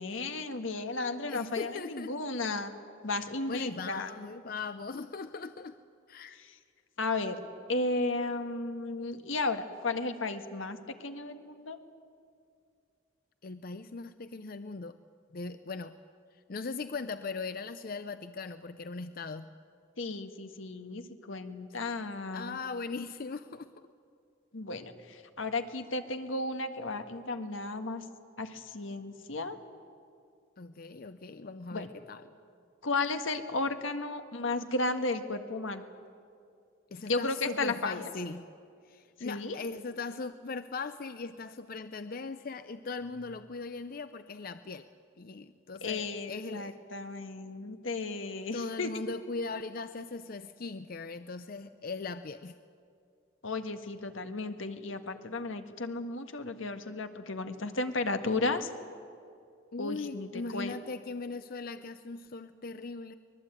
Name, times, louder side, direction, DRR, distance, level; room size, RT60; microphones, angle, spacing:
voice 1, 0.0-2.7 3.0-4.1 6.4-6.5 7.0-7.4 7.7-11.8 20.0-22.6 24.5-28.0 28.4-29.6 31.7-31.9 32.8-35.8 37.1-38.1 39.2-39.6 45.8-48.9 53.4-58.7 59.8-60.7, left 3 dB, 85° left, 7 dB, 1.6 m, -34 dB
voice 2, 1.3-2.1 3.5-5.8 6.1-6.4 13.4-15.0 15.3-16.0 16.3-19.5 22.3-23.7 30.6-32.2 36.9-38.5 38.8-44.9 45.2-46.8 48.5-52.5 59.7-63.2, left 4 dB, 45° left, 11 dB, 0.6 m, -39 dB
24.0 x 20.5 x 9.0 m, 2.4 s
head